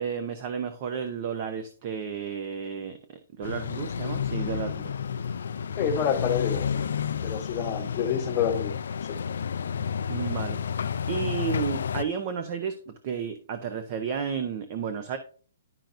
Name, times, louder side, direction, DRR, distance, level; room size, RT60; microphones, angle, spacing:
voice 1, 0.0-3.0 3.4-4.9 10.1-15.2, right 7 dB, 30° right, 0.7 m, -32 dB
sound 1, 3.4-12.0, left 7 dB, 75° left, 0.4 m, -31 dB
voice 2, 5.8-6.9 7.2-8.8, left 7 dB, 20° left, 1.0 m, -28 dB
10.5 x 5.8 x 2.5 m
hypercardioid pair, 170°, 0 cm